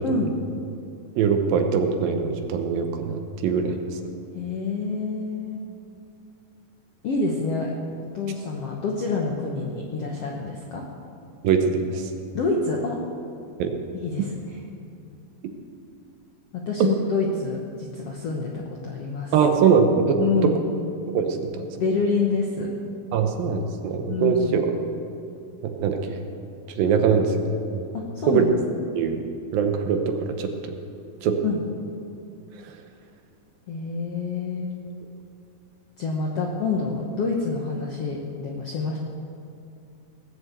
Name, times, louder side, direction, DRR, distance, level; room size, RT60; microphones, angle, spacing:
voice 1, 0.0-0.3 4.3-5.6 7.0-7.7 8.1-10.8 12.3-13.0 13.9-14.6 14.9-15.1 16.7-19.3 20.2-20.6 21.8-22.7 24.1-24.6 27.9-28.5 31.4-31.6 33.7-34.7 36.0-39.0, left 4 dB, 70° left, -1 dB, 1.4 m, -27 dB
voice 2, 1.2-3.8 11.4-12.1 13.6-13.7 19.3-20.5 21.1-21.5 23.1-24.7 25.6-26.2 26.8-27.4 27.7-27.9 28.3-28.4 29.0-29.2 29.5-30.5 31.2-31.4, right 6 dB, 75° right, 5 dB, 2.6 m, -22 dB
18.5 x 7.3 x 8.0 m, 2.5 s
omnidirectional pair, 4.4 m